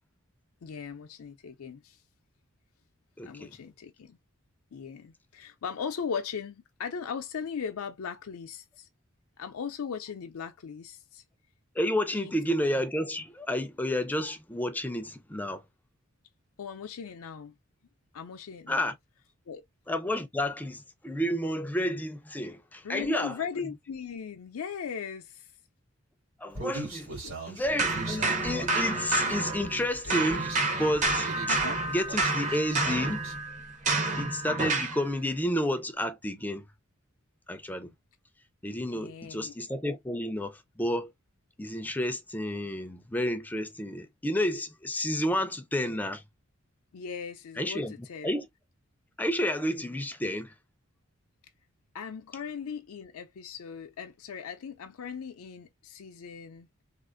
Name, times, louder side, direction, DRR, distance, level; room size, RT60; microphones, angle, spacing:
voice 1, 0.6-2.0 3.2-4.2 4.7-8.9 9.4-11.2 12.1-12.3 16.6-17.5 18.1-18.9 19.5-19.6 22.8-25.5 27.2-27.4 31.4-31.8 38.9-39.5 46.9-48.3 51.9-56.7, left 6 dB, 90° left, 0.4 m, -38 dB
voice 2, 3.2-3.6 11.8-15.6 18.7-18.9 19.9-23.4 26.4-31.6 31.9-33.2 34.2-36.7 37.5-37.9 38.6-41.1 41.6-46.2 47.6-48.5 49.2-50.5, left 1 dB, 10° left, 0.4 m, -31 dB
Human voice, 26.5-33.4, right 2 dB, 70° right, 2.2 m, -40 dB
sound 1, 27.8-29.8 30.1-35.0, right 3 dB, 35° right, 0.6 m, -29 dB
3.5 x 2.4 x 2.4 m
head